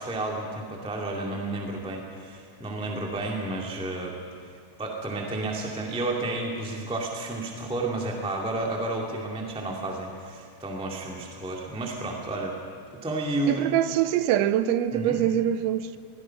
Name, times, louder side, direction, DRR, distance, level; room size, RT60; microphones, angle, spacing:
voice 1, 0.0-4.2 4.8-12.6 13.0-13.7 14.9-15.2, right 2 dB, 5° right, 0.5 m, -31 dB
voice 2, 13.5-16.0, right 11 dB, 85° right, 3.0 m, -24 dB
23.0 x 19.0 x 6.0 m
omnidirectional pair, 5.4 m